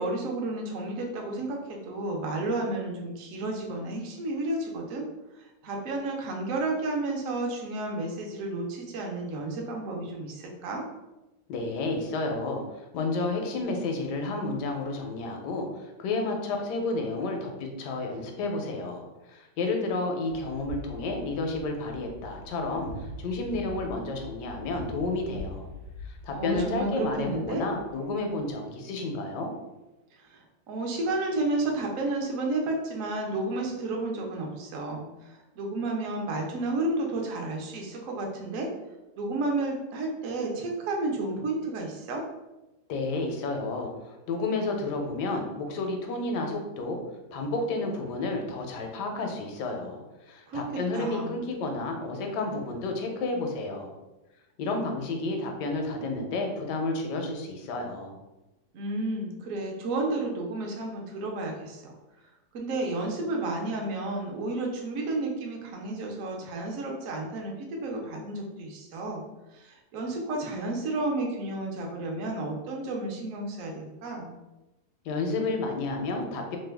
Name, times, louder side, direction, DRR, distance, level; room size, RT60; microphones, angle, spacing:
voice 1, 0.0-5.0 5.4-10.8 26.3-27.6 30.2-38.7 39.2-42.3 50.5-51.4 58.7-61.9 62.5-69.2 69.5-74.4, right 2 dB, 65° right, 1 dB, 0.9 m, -32 dB
voice 2, 11.5-25.7 26.0-29.5 42.9-47.0 47.3-53.9 54.6-58.2 75.0-76.6, left 2 dB, 90° left, 3 dB, 1.2 m, -31 dB
sound 1, 20.3-28.5, left 1 dB, 85° right, 1.2 m, -43 dB
3.0 x 2.1 x 3.3 m, 1.0 s
omnidirectional pair, 1.7 m